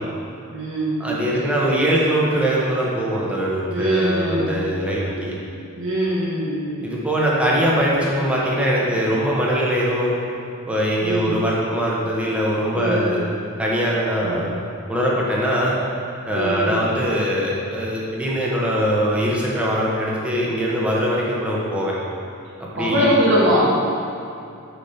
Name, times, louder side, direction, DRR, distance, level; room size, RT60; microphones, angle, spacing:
voice 1, 0.5-1.7 3.7-4.6 5.8-6.9 7.6-7.8 11.0-11.3 12.7-13.1 14.2-14.4 16.3-16.7 22.8-23.7, equal, 65° right, -7 dB, 1.8 m, -22 dB
voice 2, 1.0-5.3 6.8-10.1 10.6-13.2 13.6-14.5 14.9-15.8 16.2-22.0 22.6-23.2, equal, 5° right, -5 dB, 1.2 m, -22 dB
6.7 x 5.1 x 5.7 m, 2.6 s
head